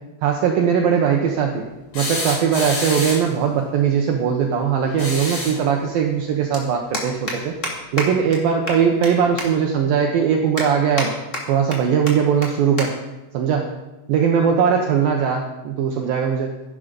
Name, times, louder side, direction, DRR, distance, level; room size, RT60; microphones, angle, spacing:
voice 1, 0.2-1.6 1.9-7.5 7.9-11.1 11.5-12.9 13.3-13.7 14.1-16.5, right 7 dB, 80° right, 2 dB, 2.1 m, -20 dB
sound 1, 1.9-3.4 4.9-5.7 7.3-7.4 8.9-9.0, left 1 dB, 85° left, 9.0 m, -27 dB
sound 2, 4.2-4.3 5.7-5.8 6.0-6.2 6.5-6.6 6.9-7.3 7.6-7.7 8.0-8.1 8.3-8.4 8.7-9.1 9.4-9.5 9.9-10.0 10.6-11.1 11.3-11.8 12.1-12.2 12.4-12.5 12.8-12.9 13.2-13.4 14.2-14.4, left 1 dB, 30° left, 1.5 m, -28 dB
14.0 x 11.0 x 5.2 m, 1.1 s
omnidirectional pair, 5.5 m